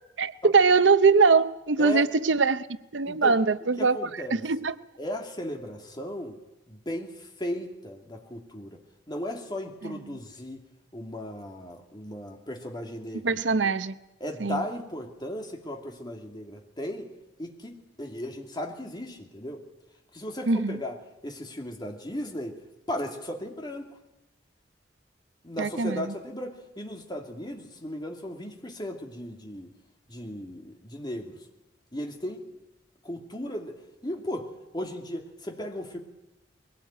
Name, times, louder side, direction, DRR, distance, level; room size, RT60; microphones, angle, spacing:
voice 1, 0.2-2.7 2.9-4.0 4.4-4.7 9.8-9.9 13.2-14.0 14.4-14.6 20.5-20.8 25.6-26.1, right 4 dB, 90° right, 0.8 m, -22 dB
voice 2, 3.1-3.4 3.8-4.4 5.0-6.4 6.7-8.8 9.1-10.6 10.9-13.4 14.2-17.1 17.4-19.6 20.1-22.6 22.9-23.9 25.4-29.7 30.1-31.4 31.9-32.4 33.0-34.5 34.7-36.0, left 1 dB, 25° left, 2.7 m, -36 dB
21.5 x 17.5 x 9.0 m
head